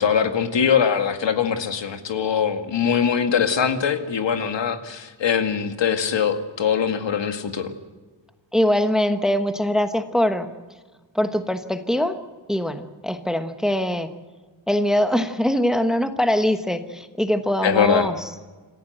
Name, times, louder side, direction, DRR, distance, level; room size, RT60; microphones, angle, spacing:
voice 1, 0.0-7.7 17.6-18.1, left 7 dB, 70° left, 7 dB, 2.1 m, -22 dB
voice 2, 8.5-10.5 11.1-12.2 12.5-14.1 14.7-18.2, left 1 dB, ahead, 8 dB, 1.1 m, -22 dB
27.5 x 15.0 x 7.9 m, 1.3 s
wide cardioid pair, 150°, 45 cm